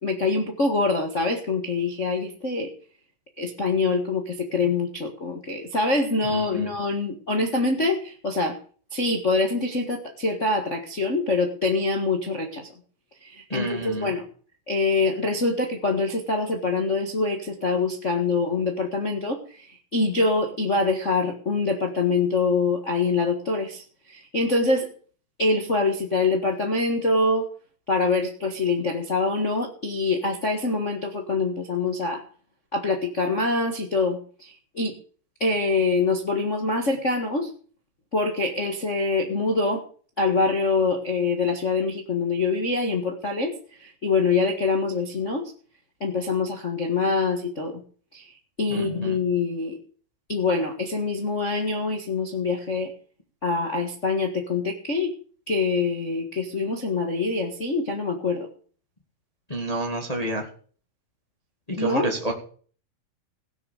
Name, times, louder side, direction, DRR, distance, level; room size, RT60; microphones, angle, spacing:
voice 1, 0.0-2.7 3.4-8.6 8.9-12.7 13.2-14.2 14.7-24.9 25.4-27.5 27.9-32.2 32.7-35.0 35.4-37.5 38.1-39.8 40.2-45.5 46.0-47.8 48.1-49.8 50.3-52.9 53.4-55.1 55.5-58.5 61.7-62.1, left 3 dB, 60° left, 3 dB, 0.7 m, -25 dB
voice 2, 6.3-6.7 13.5-14.1 48.7-49.2 59.5-60.4 61.7-62.3, right 1 dB, 15° left, 2 dB, 1.5 m, -29 dB
17.0 x 6.9 x 6.6 m, 0.43 s
omnidirectional pair, 4.3 m